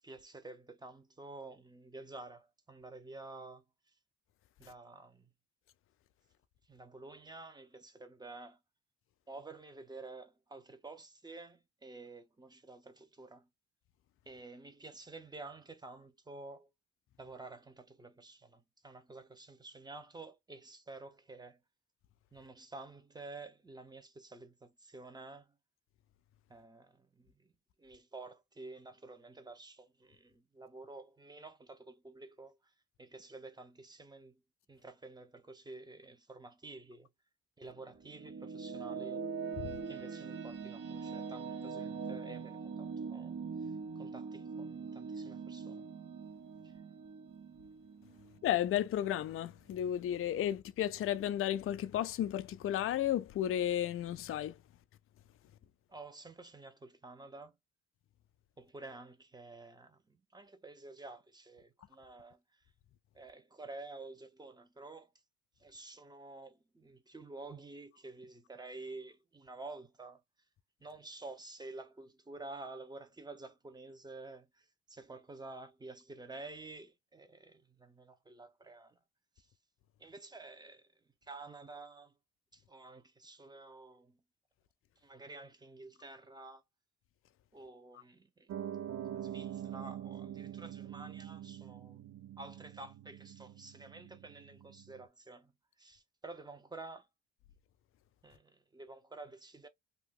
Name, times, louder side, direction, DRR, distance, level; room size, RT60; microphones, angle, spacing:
voice 1, 0.0-3.9 4.6-5.3 6.7-8.6 9.3-13.5 14.3-16.7 17.2-21.6 22.3-25.6 26.5-27.5 27.8-32.7 33.0-34.4 34.7-37.1 37.6-39.3 39.8-45.9 46.6-46.8 55.9-57.6 58.6-62.6 63.1-65.1 65.6-70.2 70.8-79.0 79.4-79.5 80.0-80.9 81.2-82.2 82.5-84.2 85.0-86.6 87.5-88.5 89.1-92.1 92.4-95.5 95.8-97.1 98.2-99.7, right 3 dB, 15° right, 0.8 m, -50 dB
sound 1, 37.7-49.0, right 5 dB, 60° right, 1.4 m, -42 dB
voice 2, 48.4-54.6, left 11 dB, 45° left, 0.4 m, -33 dB
Piano, 88.5-95.0, right 11 dB, 75° right, 0.6 m, -45 dB
2.7 x 2.3 x 3.6 m
cardioid pair, 90°, 30 cm